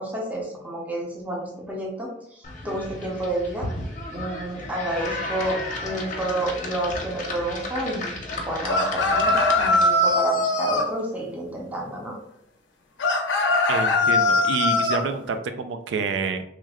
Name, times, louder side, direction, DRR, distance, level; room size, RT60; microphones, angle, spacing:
voice 1, 0.0-3.7 4.1-12.2, right 1 dB, 10° right, -3 dB, 0.5 m, -30 dB
sound 1, 2.4-10.2, left 2 dB, 45° left, 0.6 m, -34 dB
sound 2, 8.7-10.9 13.0-15.0, left 2 dB, 90° left, 0.5 m, -21 dB
voice 2, 13.7-16.4, right 4 dB, 75° right, 8 dB, 0.3 m, -28 dB
3.2 x 2.2 x 3.5 m, 0.75 s
head